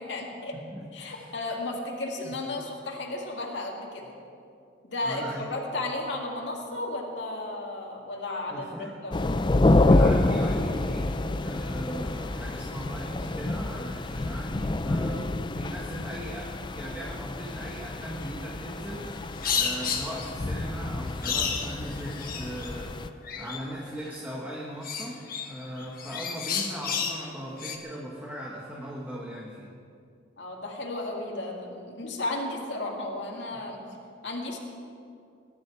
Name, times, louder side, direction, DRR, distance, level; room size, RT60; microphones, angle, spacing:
voice 1, 0.0-0.6 0.9-4.1 4.8-9.1 30.4-33.8 34.2-34.6, left 2 dB, 65° left, -1 dB, 2.3 m, -34 dB
voice 2, 0.6-1.3 2.2-2.3 5.0-5.5 8.5-9.0 9.9-11.2 11.4-29.7, equal, 10° right, -3 dB, 1.5 m, -39 dB
sound 1, 9.1-23.1, left 2 dB, 25° left, 0.4 m, -28 dB
sound 2, 19.0-20.3 21.2-22.8 23.2-24.1 24.8-27.3 27.6-27.8, left 6 dB, 50° left, 1.3 m, -32 dB
22.0 x 11.0 x 4.7 m, 2.5 s
head